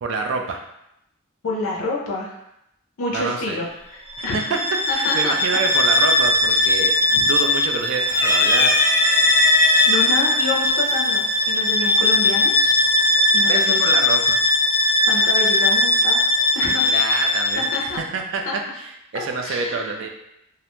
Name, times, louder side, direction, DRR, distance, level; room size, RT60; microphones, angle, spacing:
voice 1, 0.0-0.6 3.1-3.6 4.3-4.6 4.9-8.8 13.4-14.4 16.8-18.4 18.8-20.1, right 4 dB, 60° right, 3 dB, 0.3 m, -27 dB
voice 2, 1.4-2.3 3.0-4.6 4.9-5.4 6.5-6.6 7.1-7.2 9.9-12.7 13.3-13.8 15.1-16.2 16.5-16.9 17.6-18.0 18.5-18.6 19.1-19.9, left 2 dB, 65° left, -2 dB, 0.4 m, -28 dB
Bowed string instrument, 4.1-17.9, left 2 dB, 25° right, 0.7 m, -19 dB
sound 1, 6.2-6.6 7.0-7.7 8.1-10.0 10.9-11.0 12.2-12.7, left 1 dB, 10° left, 0.6 m, -21 dB
2.4 x 2.1 x 2.9 m, 0.79 s
head